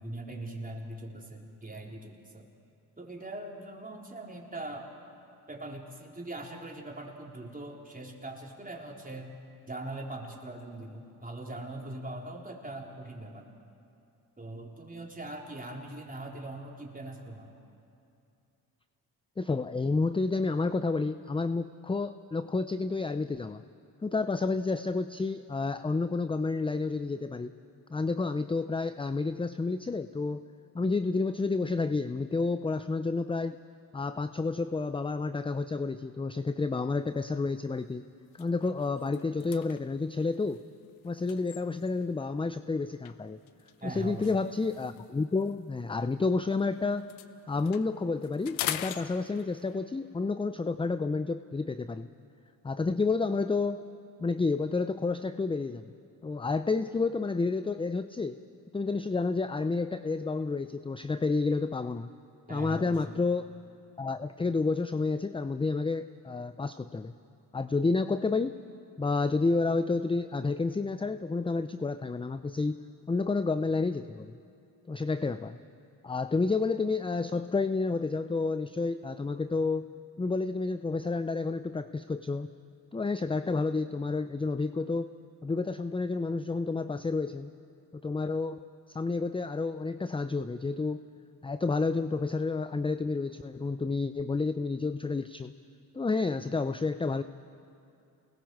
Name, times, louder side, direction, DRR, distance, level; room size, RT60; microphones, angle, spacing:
voice 1, 0.0-2.5 3.0-5.0 5.5-9.4 9.7-13.5 14.4-17.5 43.8-44.4 62.5-63.0, right 2 dB, 20° right, -1 dB, 3.9 m, -41 dB
voice 2, 19.4-23.6 24.0-27.5 27.9-30.4 30.7-33.6 33.9-38.1 38.3-40.6 41.0-43.4 43.8-47.1 47.5-52.1 52.6-53.8 54.2-55.9 56.2-58.4 58.7-62.1 62.5-63.5 64.0-67.1 67.5-68.6 69.0-72.8 73.1-74.4 74.9-75.6 76.0-79.9 80.2-82.5 82.9-85.1 85.4-87.5 87.9-91.0 91.4-95.5 95.9-97.2, left 3 dB, 10° left, 12 dB, 0.5 m, -30 dB
sound 1, 37.1-37.3 37.8-37.9 38.2-42.2 43.0-46.6 46.9-49.7, left 12 dB, 80° left, 0.9 m, -42 dB
29.0 x 21.0 x 4.8 m, 2.6 s
supercardioid pair, 60°, 46 cm